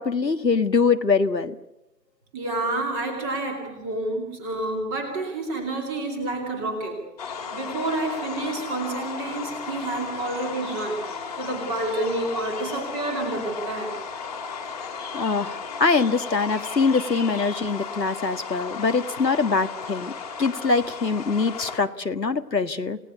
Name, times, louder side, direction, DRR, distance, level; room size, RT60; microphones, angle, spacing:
voice 1, 0.0-1.6 15.1-20.1 20.4-23.0, left 4 dB, 85° left, 9 dB, 1.8 m, -23 dB
voice 2, 2.3-7.0 7.5-14.0, right 2 dB, 10° right, 3 dB, 2.7 m, -29 dB
sound 1, 7.2-21.8, left 5 dB, 25° left, 2.5 m, -35 dB
28.5 x 18.0 x 8.2 m, 0.93 s
figure-of-eight pair, 160°, 49 cm